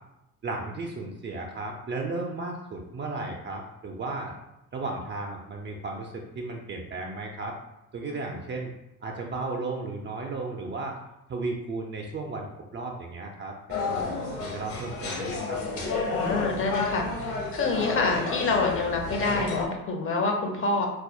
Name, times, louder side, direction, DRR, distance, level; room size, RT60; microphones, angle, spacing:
voice 1, 0.4-4.3 4.7-7.5 7.9-8.7 9.0-11.0 11.3-12.5 12.7-16.1, right 3 dB, 25° right, 0 dB, 0.4 m, -35 dB
sound 1, 13.7-19.6, left 4 dB, 50° left, 1.1 m, -31 dB
voice 2, 16.1-20.9, left 3 dB, 30° left, 2 dB, 0.7 m, -27 dB
4.0 x 2.3 x 2.6 m, 0.87 s
hypercardioid pair, 55°, 43 cm